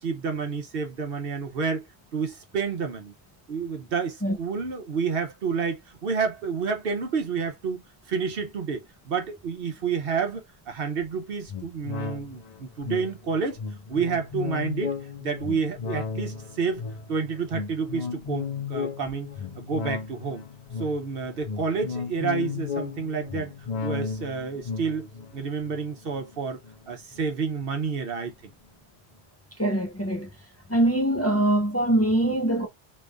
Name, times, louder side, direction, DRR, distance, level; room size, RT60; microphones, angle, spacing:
voice 1, 0.0-1.9 2.1-3.1 3.5-13.6 13.9-14.9 15.2-16.8 17.1-19.3 19.6-20.4 20.8-23.5 23.8-26.6 26.9-28.5, right 5 dB, 60° right, 0.9 m, -29 dB
sound 1, 11.5-27.2 27.6-27.7, left 5 dB, 45° left, 0.8 m, -35 dB
voice 2, 29.6-30.3 30.7-32.7, right 1 dB, 15° left, 0.6 m, -23 dB
3.0 x 2.5 x 3.3 m
omnidirectional pair, 1.1 m